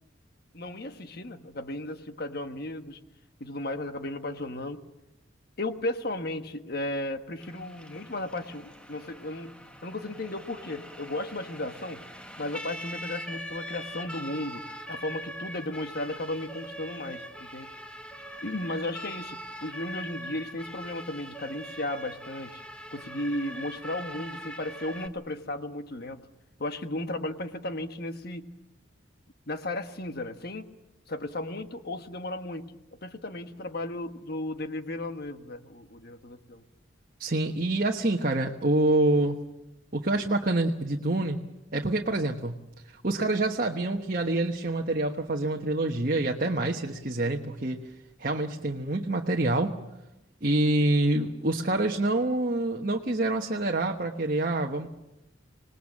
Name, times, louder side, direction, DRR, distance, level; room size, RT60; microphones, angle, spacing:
voice 1, 0.5-3.0 3.4-4.8 5.6-9.5 9.8-12.0 12.4-17.7 18.4-22.6 22.9-26.2 26.6-28.5 29.5-30.7 31.1-32.7 33.0-36.6, left 1 dB, 50° left, 8 dB, 1.4 m, -35 dB
Siren, 7.4-25.1, equal, 5° left, 1.2 m, -42 dB
voice 2, 37.2-39.4 39.9-41.4 41.7-42.6 43.0-47.8 48.2-49.7 50.4-54.9, right 2 dB, 45° right, 2 dB, 1.2 m, -26 dB
26.5 x 19.5 x 7.4 m, 0.91 s
head